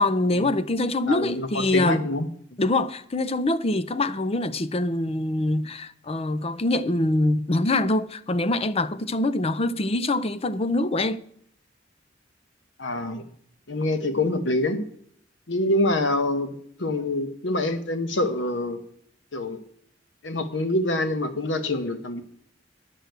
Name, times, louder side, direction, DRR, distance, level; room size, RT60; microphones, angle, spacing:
voice 1, 0.0-2.1 2.6-11.2, left 2 dB, 35° left, 0.6 m, -24 dB
voice 2, 1.1-2.3 12.8-13.2 13.7-14.8 15.5-16.5 16.8-18.8 19.3-19.6 20.2-22.2, left 1 dB, 75° left, 1.2 m, -25 dB
10.5 x 6.6 x 8.0 m
head